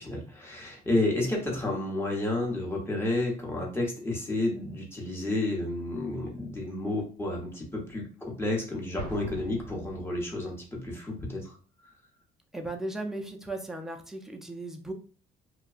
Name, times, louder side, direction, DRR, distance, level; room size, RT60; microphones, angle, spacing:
voice 1, 0.0-11.6, left 2 dB, 15° left, -1 dB, 0.9 m, -31 dB
Explosion, 9.0-10.6, right 3 dB, 65° right, 0.7 m, -42 dB
voice 2, 12.5-14.9, right 2 dB, 5° right, 2 dB, 0.4 m, -36 dB
2.7 x 2.2 x 2.4 m, 0.40 s
cardioid pair, 110°, 17 cm